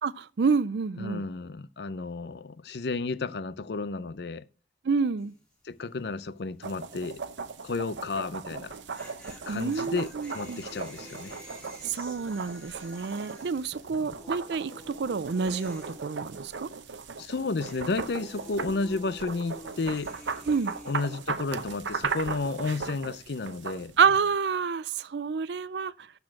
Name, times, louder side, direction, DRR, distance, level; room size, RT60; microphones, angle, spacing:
voice 1, 0.0-1.2 4.8-5.3 9.5-10.6 11.8-16.7 20.5-20.8 24.0-26.1, right 5 dB, 65° right, 0.4 m, -28 dB
voice 2, 1.0-4.4 5.7-7.2 7.6-8.7 9.5-11.4 17.2-20.1 20.9-23.9, left 3 dB, 65° left, 0.6 m, -32 dB
sound 1, 5.2-5.5 5.8-5.9 8.5-16.9 17.2-21.2, equal, 5° left, 2.5 m, -49 dB
sound 2, 6.6-24.2, right 5 dB, 90° right, 0.8 m, -38 dB
12.5 x 4.4 x 5.8 m
head